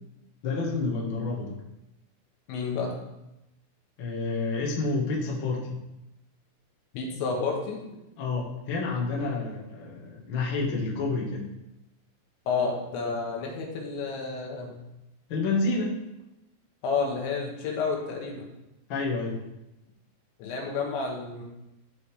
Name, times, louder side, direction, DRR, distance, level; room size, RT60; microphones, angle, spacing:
voice 1, 0.4-1.6 4.0-5.8 8.2-11.5 15.3-15.9 18.9-19.4, left 3 dB, 70° left, -4 dB, 1.1 m, -29 dB
voice 2, 2.5-3.0 6.9-7.8 12.5-14.8 16.8-18.5 20.4-21.4, left 4 dB, 85° left, 0 dB, 3.7 m, -30 dB
13.5 x 5.0 x 3.4 m, 0.93 s
omnidirectional pair, 5.1 m